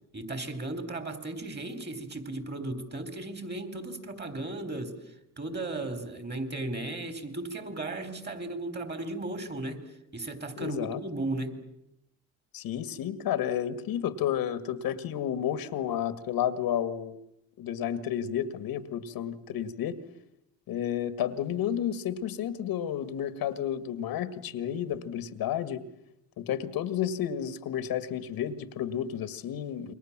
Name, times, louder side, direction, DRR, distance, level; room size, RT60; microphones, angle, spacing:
voice 1, 0.1-9.9 10.1-11.7, right 2 dB, 30° right, 10 dB, 4.2 m, -36 dB
voice 2, 10.6-11.0 12.5-17.2 17.6-20.0 20.7-25.8 26.4-29.9, left 10 dB, 80° left, 13 dB, 1.9 m, -31 dB
28.5 x 23.0 x 7.4 m, 0.82 s
cardioid pair, 95°, 35 cm